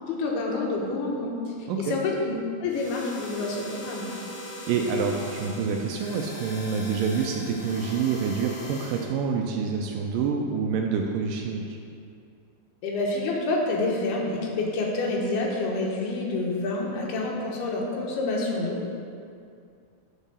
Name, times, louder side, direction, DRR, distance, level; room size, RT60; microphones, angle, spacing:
voice 1, 0.1-2.3 2.6-4.1 12.8-18.9, left 2 dB, 90° left, -2 dB, 3.1 m, -28 dB
sound 1, 2.7-9.0, left 1 dB, 60° left, 3.2 m, -40 dB
voice 2, 4.7-11.8, right 5 dB, 85° right, 2 dB, 2.0 m, -27 dB
8.9 x 4.5 x 6.7 m, 2.4 s
omnidirectional pair, 4.4 m